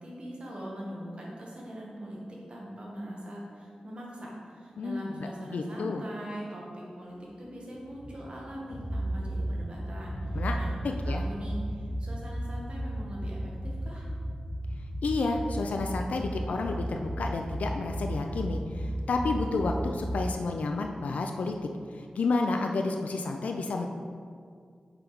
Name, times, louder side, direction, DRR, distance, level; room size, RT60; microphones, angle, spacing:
voice 1, 0.0-2.2 2.5-14.1, equal, 50° right, -4 dB, 1.7 m, -41 dB
voice 2, 4.8-6.0 10.4-10.6 10.8-11.2 15.0-21.5 21.9-23.9, left 3 dB, 90° left, 3 dB, 0.4 m, -30 dB
sound 1, 7.7-20.3, right 1 dB, 45° left, 1.4 m, -34 dB
5.8 x 4.5 x 5.3 m, 2.2 s
wide cardioid pair, 90°, 2 cm